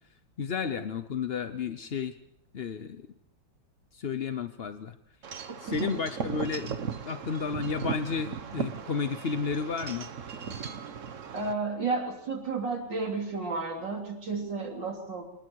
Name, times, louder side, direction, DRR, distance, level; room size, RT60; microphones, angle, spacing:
voice 1, 0.4-2.2 2.5-3.1 3.9-4.9 5.6-6.7 7.0-10.1, left 6 dB, 50° left, 9 dB, 0.7 m, -32 dB
Wind chime / Wind, 5.2-11.5, right 6 dB, 45° right, 1.3 m, -37 dB
voice 2, 11.3-15.2, right 4 dB, 65° right, 2 dB, 4.0 m, -32 dB
27.0 x 20.0 x 4.8 m, 0.81 s
omnidirectional pair, 2.1 m